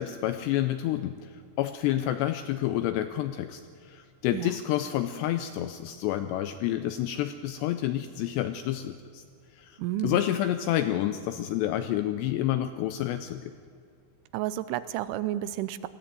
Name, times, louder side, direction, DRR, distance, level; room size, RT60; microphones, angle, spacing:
voice 1, 0.0-9.2 9.5-13.5, left 12 dB, 85° left, 10 dB, 2.5 m, -29 dB
voice 2, 9.8-10.2 14.3-15.9, right 13 dB, 85° right, 14 dB, 3.0 m, -31 dB
20.0 x 15.0 x 9.2 m, 2.3 s
omnidirectional pair, 5.5 m